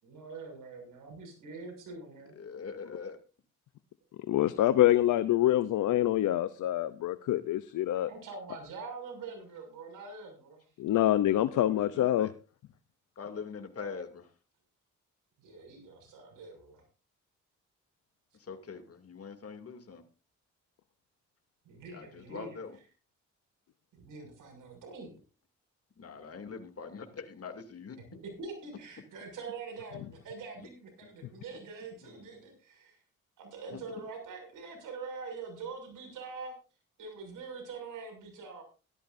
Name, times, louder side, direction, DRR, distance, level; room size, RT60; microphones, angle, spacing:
voice 1, 0.0-2.3 8.0-10.7 15.4-16.8 21.6-22.6 23.9-25.1 28.4-33.0 33.4-36.5 37.0-38.6, right 4 dB, 80° right, 4 dB, 6.5 m, -44 dB
voice 2, 2.4-3.2 11.5-12.3 13.2-14.3 18.4-20.0 21.9-22.8 26.0-28.0 30.6-30.7 33.7-33.8, left 5 dB, 50° left, 6 dB, 2.7 m, -43 dB
voice 3, 4.3-8.1 10.8-12.3, left 13 dB, 75° left, 14 dB, 0.7 m, -26 dB
16.5 x 13.5 x 2.7 m, 0.34 s
supercardioid pair, 60°, 31 cm